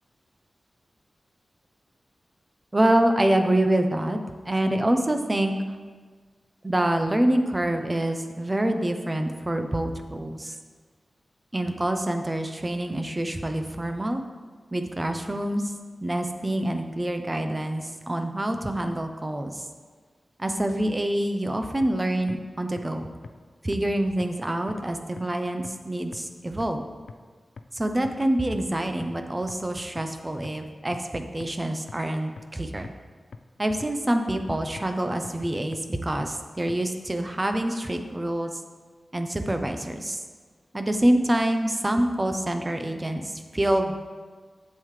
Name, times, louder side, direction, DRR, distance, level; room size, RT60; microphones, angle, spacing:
voice 1, 2.7-4.2 4.5-5.5 6.6-10.5 11.5-14.2 14.7-15.6 16.0-19.6 20.4-23.1 23.6-26.8 27.7-32.9 33.6-38.6 39.1-40.2 40.7-43.2 43.5-43.9, right 1 dB, 20° right, 6 dB, 0.7 m, -26 dB
sound 1, 21.8-21.9 22.3-22.4 22.8-22.9 23.2-23.3 23.7-23.8 24.2-24.3 24.7-24.8 25.2-25.3 25.6-25.7 26.1-26.2 26.6-26.7 27.1-27.2 27.6-27.7 28.0-28.1 28.5-28.6 29.0-29.1 29.5-29.6 30.0-30.1 30.4-30.5 30.9-31.0 31.4-31.5 31.9-32.0 32.4-32.5 32.8-32.9 33.3-33.4 33.8-33.9 34.3-34.4 34.8-34.9 35.2-35.3 35.7-35.8 36.2-36.3 36.7-36.8, left 4 dB, 85° left, 0.4 m, -40 dB
11.0 x 7.6 x 3.3 m, 1.5 s
wide cardioid pair, 105°, 0 cm